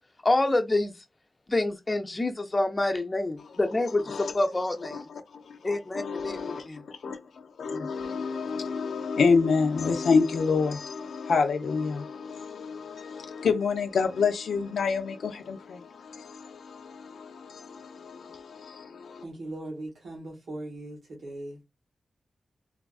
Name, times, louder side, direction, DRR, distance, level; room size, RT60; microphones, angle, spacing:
voice 1, 0.2-0.9 1.5-5.1 5.6-6.8, left 2 dB, 25° left, 0.5 m, -27 dB
voice 2, 4.9-19.2, left 5 dB, 90° left, 0.4 m, -28 dB
voice 3, 19.2-21.6, right 1 dB, 90° right, 1.0 m, -39 dB
3.3 x 2.3 x 2.3 m
wide cardioid pair, 105°, 0 cm